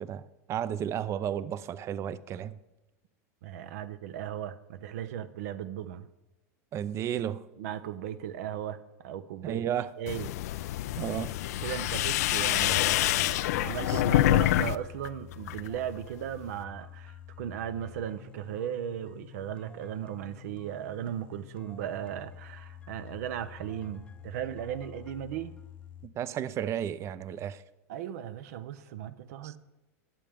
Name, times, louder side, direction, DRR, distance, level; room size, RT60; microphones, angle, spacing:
voice 1, 0.0-2.6 6.7-7.5 9.4-9.9 11.0-11.4 13.9-14.0 26.0-27.6 29.4-29.6, right 10 dB, 35° right, 0.6 m, -33 dB
voice 2, 3.4-6.1 7.6-9.6 10.0-10.3 11.6-25.5 27.9-29.6, right 10 dB, 70° right, 0.7 m, -37 dB
sound 1, 10.1-14.7 15.0-15.7, left 15 dB, 75° left, 0.4 m, -26 dB
sound 2, 10.1-26.1, left 8 dB, 10° left, 0.6 m, -49 dB
21.0 x 7.4 x 3.5 m
supercardioid pair, 125°, 9 cm